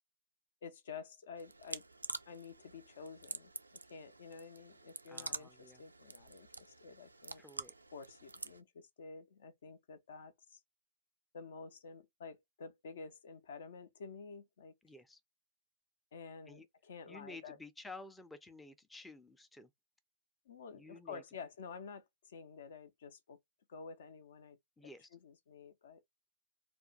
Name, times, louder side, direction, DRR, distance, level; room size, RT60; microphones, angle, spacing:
voice 1, 0.6-1.9 2.3-7.4 7.9-10.6 11.3-14.7 16.1-17.6 20.5-23.4 23.7-24.6 25.1-26.0, left 5 dB, 60° left, 0.5 m, -50 dB
sound 1, 1.4-8.6, right 2 dB, 90° right, 0.3 m, -48 dB
voice 2, 5.1-5.8 7.4-7.7 14.8-15.2 16.5-16.7 17.1-19.7 20.7-21.2 24.8-25.1, left 2 dB, 5° left, 0.4 m, -52 dB
2.3 x 2.2 x 3.8 m
figure-of-eight pair, 105°, 0 cm